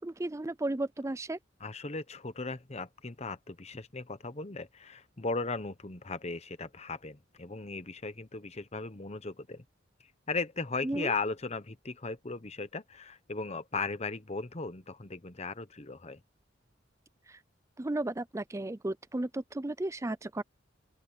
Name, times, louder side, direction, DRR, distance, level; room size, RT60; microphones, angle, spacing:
voice 1, 0.0-1.4 10.8-11.1 17.3-17.4 17.8-20.4, right 2 dB, 15° right, 0.4 m, -34 dB
voice 2, 1.6-9.6 10.3-16.2, left 3 dB, 35° left, 1.0 m, -37 dB
open air
head